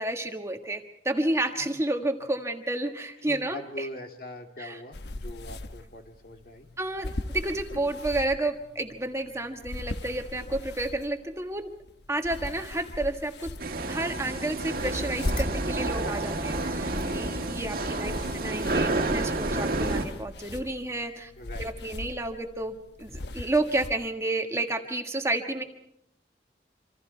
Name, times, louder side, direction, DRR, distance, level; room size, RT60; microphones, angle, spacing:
voice 1, 0.0-3.9 4.6-4.8 6.8-11.7 12.1-13.5 13.9-21.3 21.6-25.6, right 2 dB, 15° right, 4 dB, 1.5 m, -31 dB
voice 2, 3.2-6.7 17.0-18.3 21.4-22.1, left 1 dB, 50° left, 4 dB, 2.5 m, -43 dB
sound 1, 4.9-24.0, left 2 dB, 70° left, 1.0 m, -40 dB
sound 2, 13.6-20.1, right 2 dB, 55° right, 1.9 m, -29 dB
sound 3, 15.3-19.3, equal, 35° left, 7.7 m, -42 dB
26.5 x 26.5 x 4.6 m, 0.77 s
head